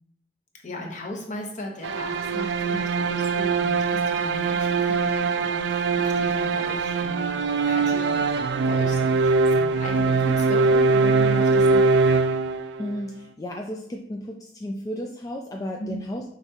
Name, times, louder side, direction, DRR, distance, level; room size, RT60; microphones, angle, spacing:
voice 1, 0.6-8.3 8.7-11.8 15.8-16.0, left 1 dB, 45° left, 1 dB, 0.9 m, -37 dB
sound 1, 1.8-13.0, right 4 dB, 70° right, 0.3 m, -22 dB
voice 2, 12.8-16.2, left 1 dB, 20° left, 1 dB, 0.3 m, -33 dB
5.1 x 3.5 x 2.7 m, 0.77 s
head